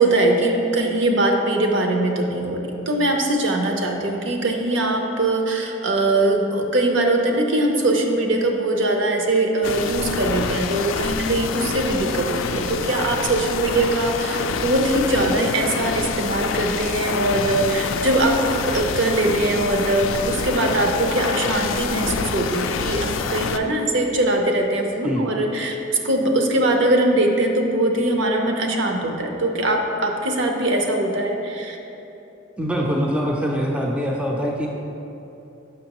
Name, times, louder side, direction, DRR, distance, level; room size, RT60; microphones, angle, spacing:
voice 1, 0.0-18.4 18.6-31.8, right 2 dB, 60° right, 2 dB, 0.7 m, -21 dB
sound 1, 9.6-23.6, left 5 dB, 75° left, 0.3 m, -27 dB
voice 2, 32.6-34.7, equal, 5° right, -2 dB, 0.4 m, -23 dB
6.6 x 5.9 x 2.9 m, 3.0 s
head